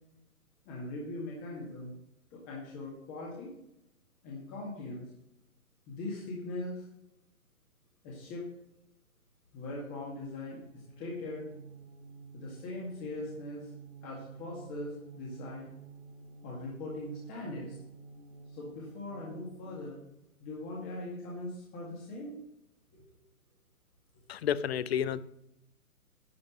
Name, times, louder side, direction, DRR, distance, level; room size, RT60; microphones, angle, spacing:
voice 1, 0.7-1.9 2.3-3.5 4.2-5.0 5.9-6.8 8.0-8.4 9.5-11.5 12.3-13.7 14.0-15.7 16.4-17.8 18.5-20.0 20.4-22.3 22.9-23.1, left 2 dB, 20° left, -4 dB, 2.0 m, -40 dB
sound 1, 10.6-20.0, right 5 dB, 50° right, 1.5 m, -50 dB
voice 2, 24.3-25.2, left 9 dB, 45° left, 17 dB, 0.5 m, -30 dB
11.0 x 5.4 x 6.0 m, 0.83 s
hypercardioid pair, 145°, 44 cm